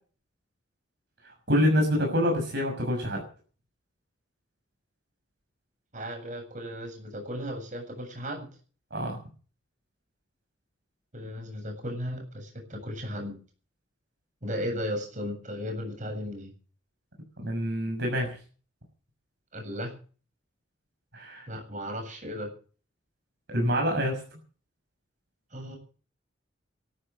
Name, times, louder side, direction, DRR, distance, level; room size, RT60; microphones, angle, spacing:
voice 1, 1.5-3.2 8.9-9.2 17.4-18.3 21.1-21.4 23.5-24.2, equal, 60° right, 1 dB, 6.4 m, -26 dB
voice 2, 5.9-8.5 11.1-13.4 14.4-16.5 19.5-19.9 21.5-22.5 25.5-25.8, equal, 40° right, 3 dB, 7.5 m, -35 dB
13.5 x 13.5 x 7.9 m, 0.40 s
head